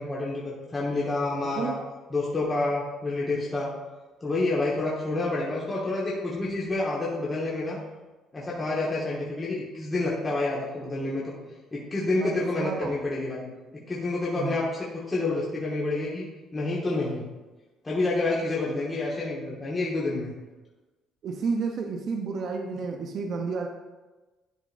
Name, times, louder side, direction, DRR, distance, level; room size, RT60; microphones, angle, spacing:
voice 1, 0.0-1.7 2.1-3.7 4.2-7.8 8.3-11.4 11.7-14.6 14.9-17.2 17.8-20.3, left 2 dB, 20° left, -6 dB, 1.1 m, -28 dB
voice 2, 12.2-13.0 14.3-14.6 21.2-23.7, right 4 dB, 45° right, 3 dB, 0.6 m, -31 dB
11.0 x 3.8 x 2.5 m, 1.2 s
cardioid pair, 150°, 0 cm